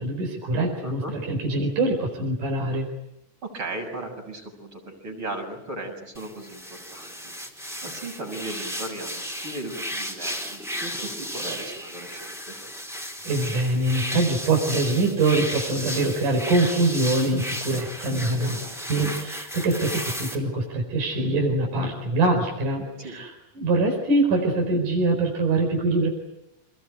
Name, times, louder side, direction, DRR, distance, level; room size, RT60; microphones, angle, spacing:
voice 1, 0.0-2.9 13.3-18.6 18.9-23.3 23.6-26.1, right 2 dB, 60° right, 1 dB, 5.9 m, -24 dB
voice 2, 0.8-1.1 3.4-7.3 7.8-12.6 18.3-19.1 22.8-23.2, right 2 dB, 30° right, 2 dB, 7.6 m, -37 dB
sound 1, 6.1-20.3, equal, ahead, 4.0 m, -34 dB
28.5 x 20.5 x 9.5 m, 0.86 s
omnidirectional pair, 4.2 m